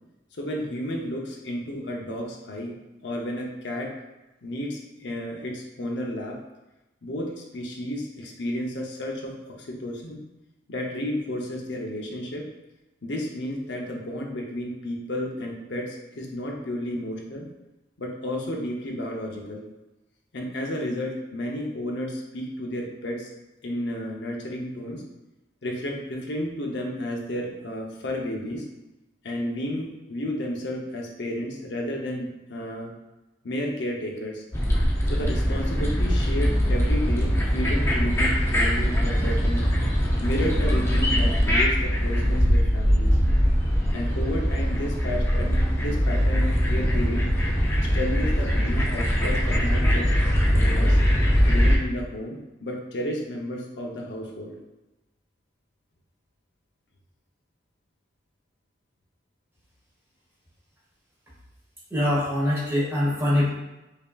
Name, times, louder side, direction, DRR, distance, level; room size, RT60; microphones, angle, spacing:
voice 1, 0.4-2.7 3.0-3.9 4.4-6.4 7.0-10.2 10.7-12.5 13.0-17.5 18.0-19.7 20.3-23.3 23.6-25.0 25.6-28.6 29.2-32.9 33.4-34.4 35.0-39.6 40.2-43.2 43.9-47.3 47.8-50.1 50.5-51.0 51.5-54.6, left 1 dB, 75° left, 0 dB, 0.7 m, -32 dB
sound 1, 34.5-51.8, equal, 15° left, 0.5 m, -22 dB
voice 2, 61.9-63.5, left 1 dB, 15° right, -7 dB, 1.2 m, -23 dB
5.2 x 2.8 x 2.3 m, 1.0 s
head